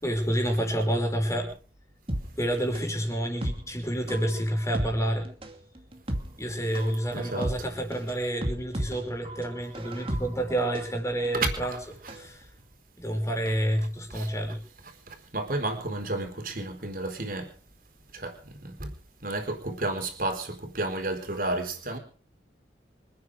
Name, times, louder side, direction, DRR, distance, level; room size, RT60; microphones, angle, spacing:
voice 1, 0.0-1.5 2.4-5.3 6.4-11.7 12.1-12.4 13.0-14.6, right 1 dB, 15° left, 5.5 m, -29 dB
sound 1, 2.1-12.3 12.6-12.7, equal, 30° right, 2.4 m, -35 dB
voice 2, 7.1-7.7 11.3-12.2 13.5-13.6 14.1-14.3 14.8-17.5 18.1-18.9 19.2-22.0, right 2 dB, 50° right, 4.3 m, -32 dB
27.0 x 9.6 x 4.9 m
head